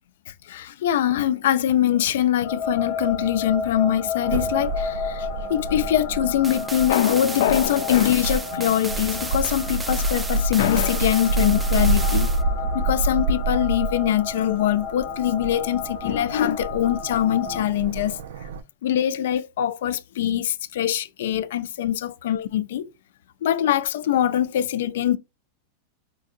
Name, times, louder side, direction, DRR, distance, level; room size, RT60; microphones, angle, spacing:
voice 1, 0.3-12.3 12.7-18.5 18.8-22.9 23.4-25.2, left 11 dB, 75° left, 0.3 m, -23 dB
sound 1, 2.4-17.6, left 5 dB, 40° left, 0.8 m, -33 dB
sound 2, 4.2-18.6, right 2 dB, 90° right, 0.3 m, -28 dB
sound 3, 6.4-12.4, right 3 dB, 10° right, 0.3 m, -34 dB
4.6 x 2.7 x 2.4 m
supercardioid pair, 155°, 0 cm